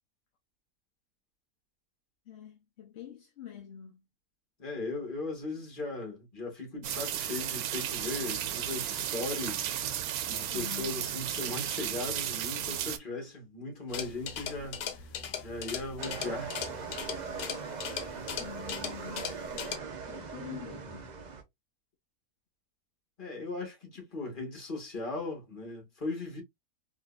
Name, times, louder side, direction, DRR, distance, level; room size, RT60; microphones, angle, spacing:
voice 1, 2.3-4.0 10.5-11.0 18.4-21.1, left 9 dB, 55° left, 0.8 m, -46 dB
voice 2, 4.6-9.7 10.3-15.1 15.4-16.6 23.2-26.4, left 3 dB, 35° left, 1.6 m, -38 dB
sound 1, 6.8-13.0, right 10 dB, 75° right, 1.0 m, -34 dB
sound 2, 13.9-19.8, left 7 dB, 85° left, 1.3 m, -39 dB
sound 3, 16.0-21.4, right 5 dB, 55° right, 0.4 m, -40 dB
3.7 x 3.0 x 2.4 m
omnidirectional pair, 1.6 m